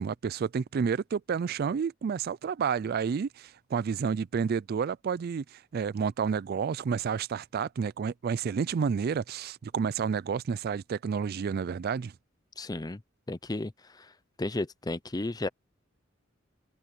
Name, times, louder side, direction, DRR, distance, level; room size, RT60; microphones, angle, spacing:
voice 1, 0.0-12.1, right 6 dB, 50° right, 0.3 m, -30 dB
voice 2, 12.6-13.0 13.3-13.7 14.0-14.1 14.4-15.5, left 2 dB, 20° left, 0.6 m, -33 dB
head